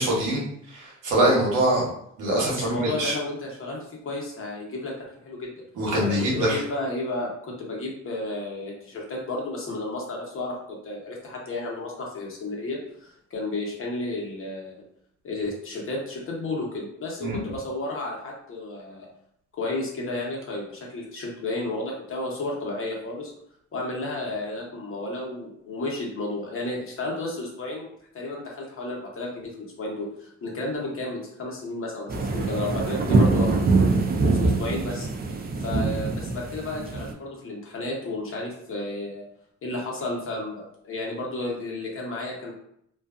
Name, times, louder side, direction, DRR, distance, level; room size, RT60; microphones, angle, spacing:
voice 1, 0.0-1.9 2.2-3.1 5.8-6.6 17.2-17.4, right 1 dB, 85° right, -4 dB, 1.1 m, -24 dB
voice 2, 2.5-5.0 5.2-5.6 6.0-10.5 10.8-14.8 15.2-19.1 19.6-23.3 23.7-33.5 33.8-35.1 35.6-39.2 39.6-42.5, left 2 dB, 45° left, -2 dB, 0.9 m, -32 dB
sound 1, 32.1-37.1, right 3 dB, 30° right, 0.4 m, -23 dB
2.4 x 2.3 x 2.4 m, 0.71 s
cardioid pair, 90°, 30 cm